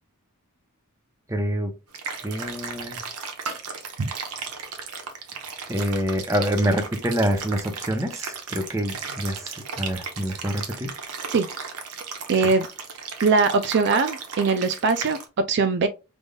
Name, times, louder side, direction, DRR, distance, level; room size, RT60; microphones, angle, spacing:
voice 1, 1.3-1.7 2.2-3.0 5.7-10.9, equal, 15° right, 0.8 m, -26 dB
sound 1, 1.9-15.3, right 5 dB, 80° right, 1.0 m, -35 dB
voice 2, 12.3-12.7 13.2-15.9, right 4 dB, 50° right, 0.4 m, -21 dB
5.2 x 3.5 x 2.3 m
head